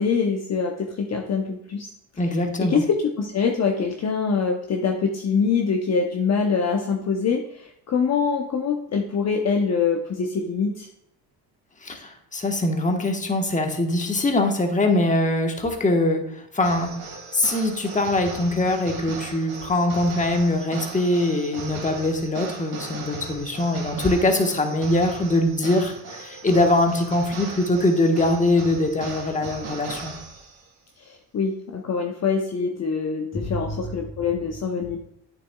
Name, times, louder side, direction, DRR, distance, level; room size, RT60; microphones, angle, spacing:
voice 1, 0.0-1.9 2.6-2.8 3.2-7.4 7.9-10.9 31.3-35.0, left 5 dB, 40° left, 2 dB, 0.9 m, -24 dB
voice 2, 2.2-2.8 11.8-16.2 16.5-16.9 17.3-30.1 33.3-33.8, left 1 dB, 20° left, 3 dB, 1.3 m, -22 dB
sound 1, 16.6-30.7, right 4 dB, 65° right, 2.5 m, -38 dB
8.6 x 6.9 x 2.3 m, 0.78 s
cardioid pair, 85°, 41 cm